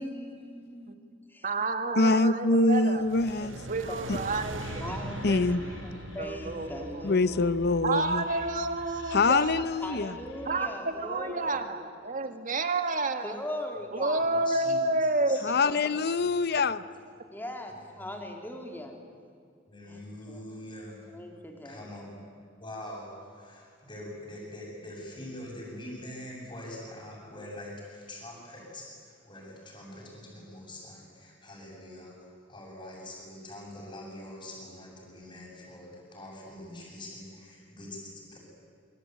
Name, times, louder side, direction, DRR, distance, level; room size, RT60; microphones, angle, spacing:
voice 1, 0.0-1.5 2.1-2.2 3.4-3.6 3.9-4.0 4.8-5.2 5.5-5.6 5.8-8.0 9.8-11.6 13.2-14.4 15.4-15.5 17.3-18.9 19.9-20.4 21.1-21.9, left 1 dB, 10° left, 2 dB, 3.4 m, -40 dB
voice 2, 1.4-3.1 3.7-4.9 5.3-5.8 6.2-7.1 7.8-9.6 10.5-13.3 13.9-15.4 15.6-15.8, right 2 dB, 45° right, 7 dB, 2.0 m, -30 dB
voice 3, 2.0-3.6 5.2-5.6 7.0-8.2 9.1-10.1 15.4-16.8, left 3 dB, 55° left, 15 dB, 0.8 m, -24 dB
sound 1, 2.9-8.0, right 1 dB, 75° right, 1.7 m, -41 dB
Whispering, 3.9-10.8, left 1 dB, 80° left, 3.7 m, -48 dB
voice 4, 14.2-14.9 15.3-15.4 16.2-16.3 17.8-18.2 19.7-21.0 21.6-22.0 22.6-38.4, left 1 dB, 25° left, -6 dB, 7.4 m, -44 dB
26.0 x 24.0 x 9.4 m, 2.2 s
head